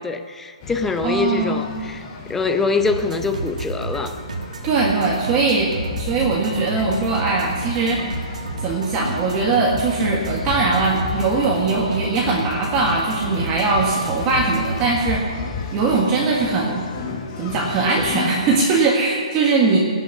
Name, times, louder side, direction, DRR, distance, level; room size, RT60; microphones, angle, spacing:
voice 1, 0.0-2.0 2.3-4.2, left 4 dB, 5° left, 8 dB, 0.7 m, -24 dB
sound 1, 0.6-18.6, left 5 dB, 30° left, 1.5 m, -33 dB
voice 2, 1.0-1.6 4.6-5.7 6.0-8.0 8.6-15.2 15.7-16.9 17.4-19.8, right 3 dB, 25° right, -3 dB, 1.8 m, -20 dB
sound 2, 2.8-15.0, right 3 dB, 80° right, 1.8 m, -32 dB
17.0 x 6.4 x 9.5 m, 2.1 s
hypercardioid pair, 145°, 4 cm